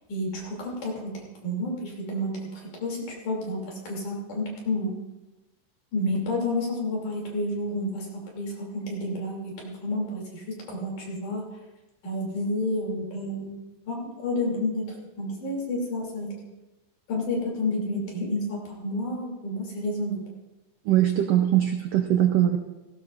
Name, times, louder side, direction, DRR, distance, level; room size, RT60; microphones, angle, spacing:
voice 1, 0.1-4.9 5.9-11.4 12.0-13.5 13.9-16.3 17.1-20.2, left 1 dB, 65° left, -2 dB, 4.4 m, -30 dB
voice 2, 20.9-22.6, right 12 dB, 85° right, 5 dB, 1.4 m, -21 dB
17.5 x 17.0 x 2.5 m, 1.1 s
omnidirectional pair, 3.8 m